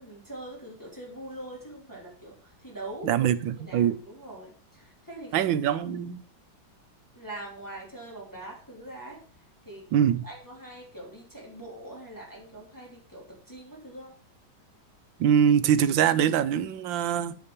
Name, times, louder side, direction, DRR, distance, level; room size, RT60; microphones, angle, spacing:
voice 1, 0.0-3.1 3.6-5.8 7.1-9.2 9.6-14.2, right 1 dB, 10° left, 3.0 m, -43 dB
voice 2, 3.0-4.0 5.3-6.2 9.9-10.2 15.2-17.3, right 9 dB, 80° right, 1.5 m, -23 dB
8.3 x 5.8 x 6.7 m
omnidirectional pair, 2.1 m